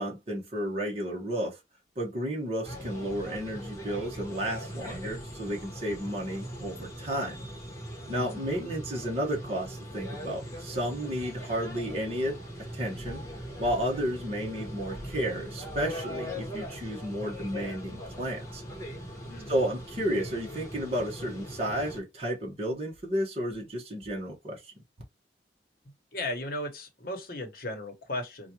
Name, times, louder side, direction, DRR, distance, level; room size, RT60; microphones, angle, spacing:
voice 1, 0.0-1.6 2.0-7.5 8.1-12.4 12.7-13.2 13.6-18.6 19.5-24.6, equal, 35° right, 1.1 m, -32 dB
sound 1, 2.6-22.0, equal, 15° left, 1.1 m, -40 dB
voice 2, 8.1-8.4 19.3-19.6 26.1-28.5, left 1 dB, 55° left, 1.0 m, -36 dB
4.4 x 2.4 x 2.8 m
head